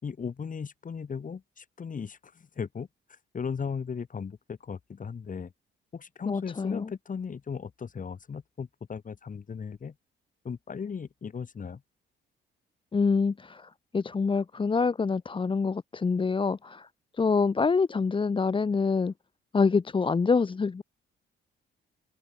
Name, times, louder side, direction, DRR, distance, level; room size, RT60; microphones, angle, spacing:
voice 1, 0.0-5.5 5.9-9.9 10.4-11.8, left 6 dB, 40° left, 4.7 m, -37 dB
voice 2, 6.3-6.9 12.9-16.9 17.1-19.1 19.5-20.8, left 4 dB, 25° left, 0.9 m, -26 dB
open air
cardioid pair, 90°, 20 cm